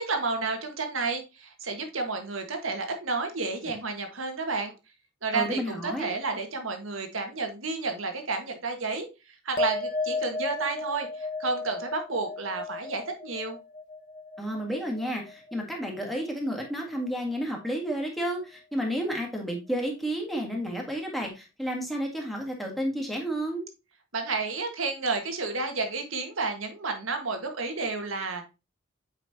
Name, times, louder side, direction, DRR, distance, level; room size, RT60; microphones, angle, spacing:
voice 1, 0.0-4.7 5.2-9.1 9.4-13.6 24.1-28.5, right 3 dB, 85° right, 5 dB, 1.6 m, -31 dB
voice 2, 5.3-6.1 14.4-23.7, equal, ahead, 0 dB, 1.8 m, -31 dB
sound 1, 9.6-16.3 16.5-17.2, left 3 dB, 40° left, 0.9 m, -35 dB
8.2 x 5.3 x 2.8 m, 0.27 s
head